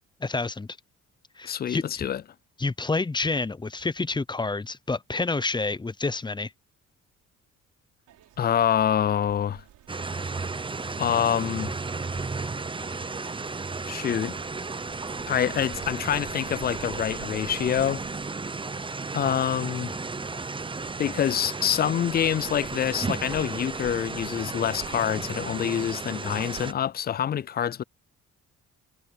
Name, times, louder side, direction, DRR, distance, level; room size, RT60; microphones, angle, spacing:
voice 1, 0.2-0.7 1.4-2.0 2.6-6.5, left 3 dB, 15° left, 0.8 m, -28 dB
voice 2, 1.4-2.2 8.4-9.6 11.0-11.7 13.9-14.4 15.3-18.0 19.1-20.0 21.0-27.8, left 9 dB, 35° left, 0.4 m, -26 dB
sound 1, 8.1-26.8, right 13 dB, 85° right, 3.5 m, -51 dB
sound 2, 9.9-26.7, right 3 dB, 15° right, 0.8 m, -34 dB
cardioid pair, 90°, 30 cm